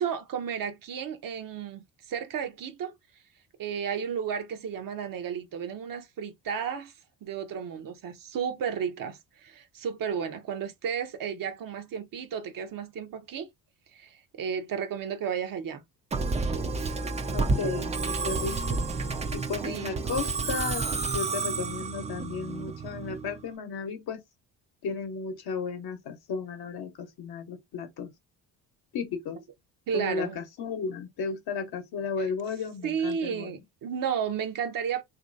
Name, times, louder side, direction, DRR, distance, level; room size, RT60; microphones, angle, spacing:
voice 1, 0.0-2.9 3.6-6.9 7.2-13.5 13.9-15.8 19.6-20.0 29.9-30.4 32.8-35.0, right 7 dB, 50° right, 0.7 m, -33 dB
Musical instrument, 16.1-23.4, right 4 dB, 15° right, 0.4 m, -30 dB
voice 2, 17.3-18.9 19.3-20.9 21.1-24.2 24.8-28.1 28.9-29.4 29.9-33.5, left 5 dB, 55° left, 0.9 m, -34 dB
3.0 x 2.6 x 2.5 m
supercardioid pair, 65°, 45 cm